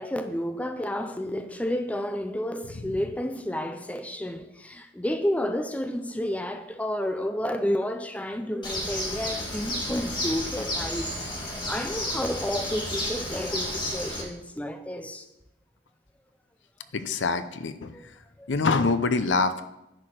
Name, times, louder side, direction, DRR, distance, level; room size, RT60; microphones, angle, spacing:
voice 1, 0.0-15.2 17.9-18.0 18.4-18.5, left 1 dB, 5° left, 0.4 m, -31 dB
Bird, 8.6-14.2, left 1 dB, 25° left, 1.5 m, -32 dB
voice 2, 16.9-18.1 18.5-19.6, left 4 dB, 70° left, 0.6 m, -25 dB
10.0 x 4.9 x 5.9 m
head